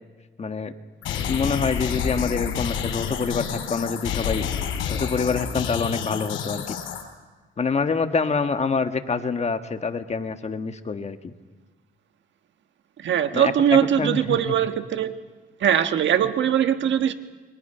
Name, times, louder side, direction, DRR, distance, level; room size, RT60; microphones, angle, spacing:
voice 1, 0.4-0.7 1.3-4.5 4.9-6.8 7.6-11.3 13.3-14.5, left 5 dB, 35° left, 7 dB, 1.6 m, -26 dB
sound 1, 1.0-7.0, left 8 dB, 85° left, 4.1 m, -29 dB
voice 2, 13.0-15.1 15.6-17.1, right 9 dB, 70° right, 9 dB, 1.4 m, -21 dB
28.5 x 23.0 x 5.7 m, 1.4 s
cardioid pair, 90°, 20 cm